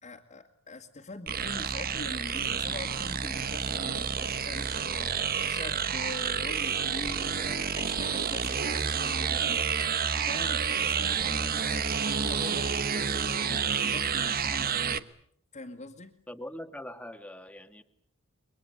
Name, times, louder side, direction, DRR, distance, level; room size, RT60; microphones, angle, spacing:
voice 1, 0.0-15.0 15.5-16.1, left 2 dB, 35° left, -2 dB, 2.4 m, -43 dB
sound 1, 1.3-15.0, right 7 dB, 45° right, 1.2 m, -29 dB
voice 2, 16.3-17.8, left 1 dB, 5° left, 7 dB, 2.1 m, -42 dB
30.0 x 24.0 x 8.0 m, 0.67 s
head